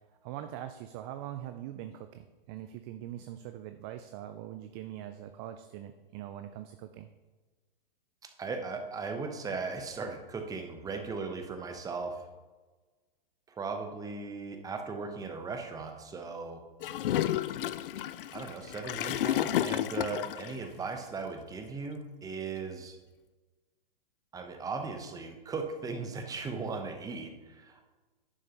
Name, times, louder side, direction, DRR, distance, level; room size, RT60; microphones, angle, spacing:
voice 1, 0.2-7.1, right 11 dB, 30° right, 9 dB, 0.3 m, -42 dB
voice 2, 8.2-12.2 13.5-16.7 18.3-23.0 24.3-27.9, right 4 dB, 10° right, 5 dB, 0.9 m, -38 dB
Gurgling / Toilet flush, 16.8-20.6, left 12 dB, 70° left, 0.4 m, -31 dB
11.0 x 6.4 x 3.0 m, 1.2 s
hypercardioid pair, 125°, 29 cm